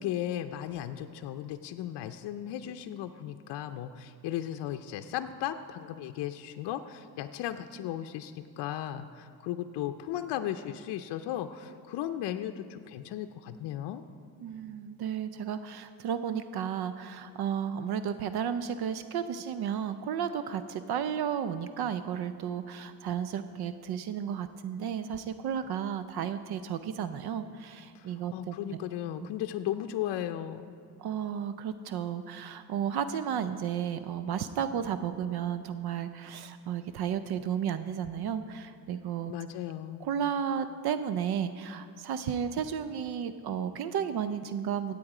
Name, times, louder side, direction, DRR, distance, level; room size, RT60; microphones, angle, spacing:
voice 1, 0.0-14.0 27.9-30.8 39.3-40.1, left 11 dB, 80° left, 6 dB, 0.6 m, -36 dB
voice 2, 14.4-28.6 31.0-39.3 40.0-45.0, right 8 dB, 65° right, 11 dB, 0.6 m, -33 dB
15.0 x 8.5 x 4.9 m, 2.3 s
cardioid pair, 105°, 41 cm